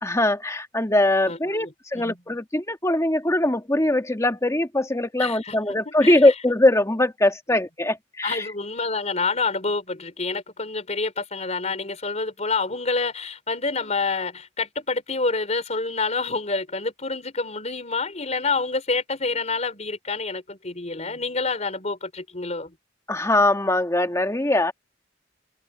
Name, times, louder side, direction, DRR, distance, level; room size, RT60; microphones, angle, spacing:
voice 1, 0.0-8.5 23.1-24.7, left 1 dB, 15° left, 2.1 m, -21 dB
voice 2, 1.3-1.7 2.0-2.2 5.2-5.5 5.9-6.3 8.2-22.7, left 3 dB, 40° left, 4.1 m, -28 dB
head